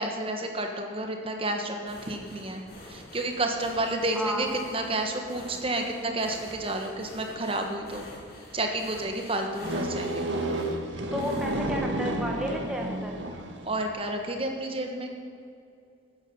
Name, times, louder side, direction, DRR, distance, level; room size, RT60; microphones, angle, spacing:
voice 1, 0.0-2.6 2.9-8.0 8.5-10.3 13.6-15.1, right 2 dB, 30° right, 4 dB, 1.3 m, -30 dB
sound 1, 1.9-12.5 12.9-13.1 13.5-13.6, left 1 dB, 50° left, 2.8 m, -48 dB
voice 2, 4.1-4.5 11.1-13.2, equal, 5° right, -1 dB, 1.0 m, -32 dB
sound 2, 9.6-13.7, right 1 dB, 75° right, 1.6 m, -31 dB
13.5 x 9.4 x 6.9 m, 2.5 s
head